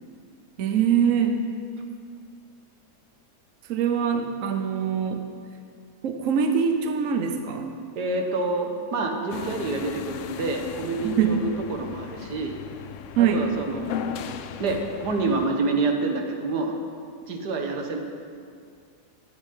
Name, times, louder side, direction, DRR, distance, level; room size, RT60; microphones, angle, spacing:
voice 1, 0.6-1.4 3.7-5.2 6.0-7.7 11.0-11.4 13.2-13.4, right 7 dB, 60° right, 5 dB, 1.1 m, -23 dB
voice 2, 8.0-12.6 13.2-16.8 17.3-18.0, right 3 dB, 80° right, 3 dB, 1.7 m, -28 dB
sound 1, 9.3-15.5, left 9 dB, 70° left, 0.7 m, -37 dB
12.0 x 9.1 x 5.6 m, 2.2 s
omnidirectional pair, 1.8 m